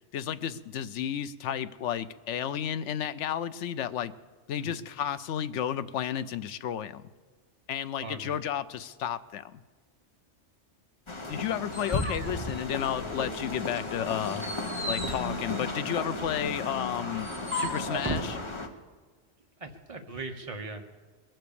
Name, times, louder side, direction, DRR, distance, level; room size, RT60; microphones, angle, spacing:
voice 1, 0.1-4.1 4.5-7.0 7.7-9.6 11.3-14.4 14.9-18.4, left 9 dB, 80° left, 14 dB, 0.9 m, -32 dB
voice 2, 8.0-8.3 14.3-14.5 19.6-20.8, right 2 dB, 30° right, 4 dB, 1.2 m, -40 dB
sound 1, 11.1-18.7, left 2 dB, 25° left, 1.0 m, -35 dB
sound 2, 11.3-13.3 13.7-18.3, equal, 10° right, 1.4 m, -37 dB
21.5 x 7.7 x 6.9 m, 1.4 s
omnidirectional pair, 1.2 m